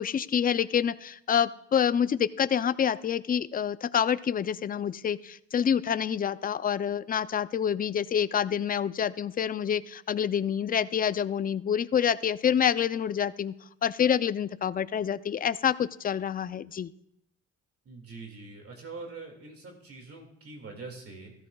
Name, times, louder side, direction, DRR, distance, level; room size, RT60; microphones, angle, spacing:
voice 1, 0.0-13.5 13.8-16.9, left 8 dB, 30° left, 15 dB, 0.4 m, -27 dB
voice 2, 17.9-21.3, right 3 dB, 50° right, 2 dB, 2.2 m, -44 dB
15.0 x 13.5 x 2.3 m, 0.74 s
cardioid pair, 90°, 30 cm